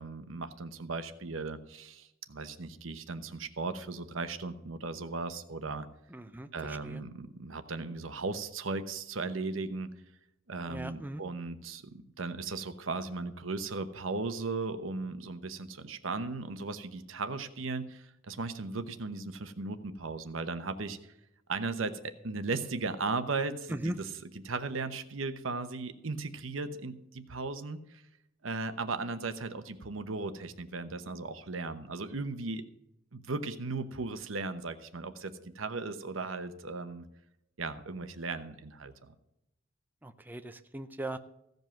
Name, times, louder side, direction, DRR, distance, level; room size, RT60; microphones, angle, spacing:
voice 1, 0.0-5.9 6.5-9.9 10.5-21.1 21.5-28.0 28.4-32.6 33.1-37.0 37.6-39.1, right 3 dB, 80° right, 10 dB, 1.0 m, -37 dB
voice 2, 6.1-7.0 10.7-11.2 23.7-23.9 40.0-41.2, right 1 dB, 10° right, 8 dB, 0.5 m, -39 dB
15.5 x 5.4 x 7.5 m, 0.84 s
head